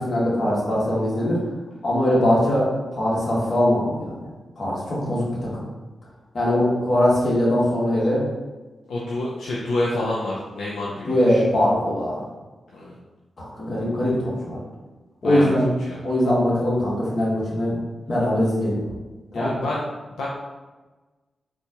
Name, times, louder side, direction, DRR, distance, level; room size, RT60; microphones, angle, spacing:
voice 1, 0.0-1.4 1.8-4.1 4.6-5.3 5.5-5.7 6.3-8.2 11.1-12.2 13.5-14.6 15.2-15.6 16.0-17.8 18.1-18.8 19.3-19.5, left 1 dB, 60° left, -6 dB, 1.4 m, -21 dB
voice 2, 8.9-11.4 12.7-12.9 15.2-15.5 15.9-16.0 19.3-19.8 20.2-20.3, left 2 dB, 85° left, -6 dB, 0.4 m, -28 dB
4.0 x 2.3 x 2.8 m, 1.2 s
supercardioid pair, 40°, 0 cm